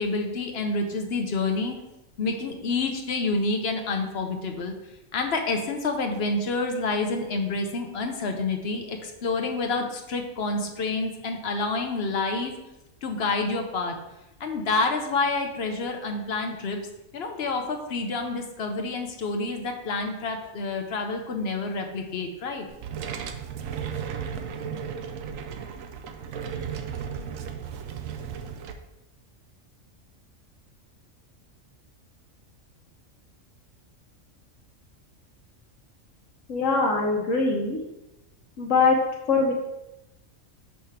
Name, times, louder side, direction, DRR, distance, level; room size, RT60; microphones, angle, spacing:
voice 1, 0.0-1.8 2.2-4.7 5.1-12.5 13.0-14.0 14.4-16.8 17.1-22.7, left 3 dB, 55° left, 4 dB, 1.0 m, -28 dB
sound 1, 22.7-28.7, right 7 dB, 90° right, 1.0 m, -35 dB
voice 2, 36.5-37.8 38.6-39.0 39.3-39.5, left 4 dB, 75° left, -1 dB, 1.2 m, -22 dB
5.7 x 3.3 x 5.7 m, 0.93 s
omnidirectional pair, 1.4 m